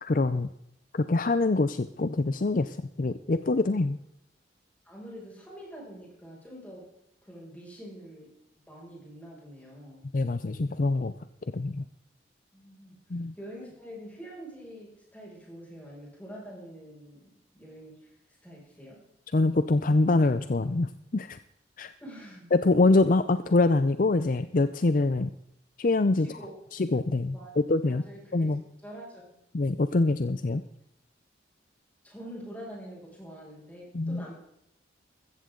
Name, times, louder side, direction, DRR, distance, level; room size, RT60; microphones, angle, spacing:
voice 1, 0.0-0.5 0.9-4.0 10.1-11.1 11.5-11.8 13.1-13.3 19.3-21.4 21.8-21.9 22.5-25.3 25.8-26.3 26.7-28.0 28.3-28.6 29.5-30.6 33.9-34.3, left 2 dB, 45° left, 12 dB, 0.5 m, -25 dB
voice 2, 4.8-6.8 7.2-8.3 8.7-10.0 12.5-12.9 13.4-18.0 18.4-19.0 22.0-22.5 26.2-26.6 27.3-27.6 27.9-28.5 28.8-29.4 32.0-34.4, equal, 10° left, -4 dB, 6.2 m, -45 dB
15.5 x 14.0 x 3.9 m, 0.80 s
head